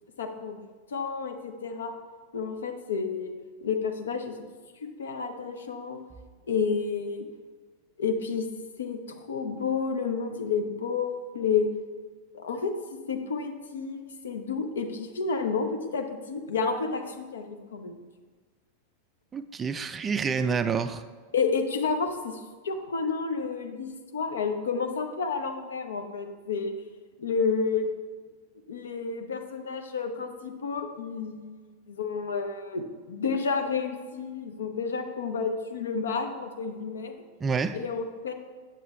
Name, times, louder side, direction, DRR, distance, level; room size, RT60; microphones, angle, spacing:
voice 1, 0.2-0.6 0.9-1.9 2.3-3.3 3.6-4.5 4.8-6.0 6.5-7.3 8.0-8.5 8.8-11.7 12.3-12.7 13.1-17.9 21.3-26.7 27.2-27.9 28.7-31.6 31.9-37.1 37.7-38.3, left 5 dB, 65° left, 6 dB, 0.7 m, -30 dB
voice 2, 19.3-21.0 37.4-37.8, right 5 dB, 20° right, 10 dB, 0.3 m, -28 dB
7.4 x 7.3 x 3.4 m, 1.5 s
figure-of-eight pair, 90°, 0 cm